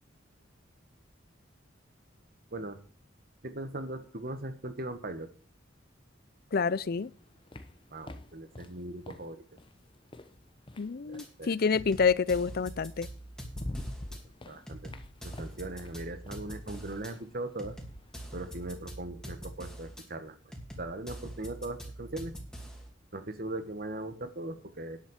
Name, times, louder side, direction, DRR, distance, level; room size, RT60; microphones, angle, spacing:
voice 1, 3.4-5.3 7.9-9.4 11.0-11.5 14.5-14.9 15.2-17.8 18.3-22.3 23.1-25.0, right 2 dB, 50° right, 1.6 m, -39 dB
voice 2, 6.5-7.1 10.8-13.1, left 5 dB, 50° left, 0.5 m, -28 dB
sound 1, 6.8-11.4 12.7-12.8 13.2-18.8, left 1 dB, 25° left, 1.0 m, -46 dB
sound 2, 11.2-11.3 11.7-14.2 14.7-17.1 17.6-20.0 20.5-22.9, right 1 dB, 5° left, 2.6 m, -44 dB
10.5 x 7.6 x 7.4 m
head